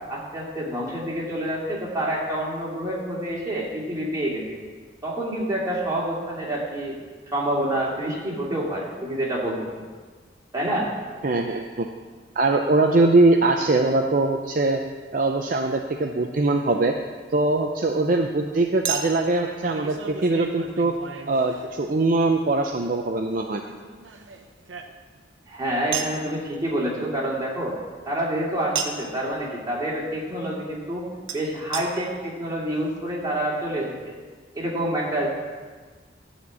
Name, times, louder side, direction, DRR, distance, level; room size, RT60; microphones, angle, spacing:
voice 1, 0.1-4.4 5.0-7.0 7.3-9.6 10.5-10.9 25.5-27.8 28.1-34.0 34.5-35.3, right 1 dB, 20° right, -5 dB, 2.5 m, -27 dB
voice 2, 11.2-11.9 12.4-14.8 15.1-16.9 17.3-20.9 21.3-23.6, right 2 dB, 45° right, 3 dB, 0.5 m, -22 dB
Chink clink, 16.0-16.2 18.8-22.0 23.6-25.3 25.9-26.2 28.7-29.1 31.3-31.4 31.7-31.8 32.5-32.6 32.8-32.9, right 7 dB, 90° right, 1.0 m, -33 dB
12.5 x 4.4 x 8.2 m, 1.5 s
head